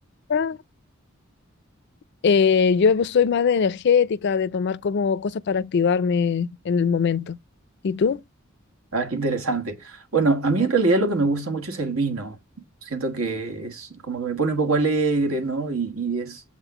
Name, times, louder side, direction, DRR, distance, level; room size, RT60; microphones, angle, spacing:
voice 1, 2.2-7.4 7.8-8.2, left 6 dB, 55° left, 0.4 m, -21 dB
voice 2, 8.9-12.4 12.8-16.4, right 3 dB, 85° right, 1.5 m, -24 dB
7.5 x 3.6 x 4.6 m
head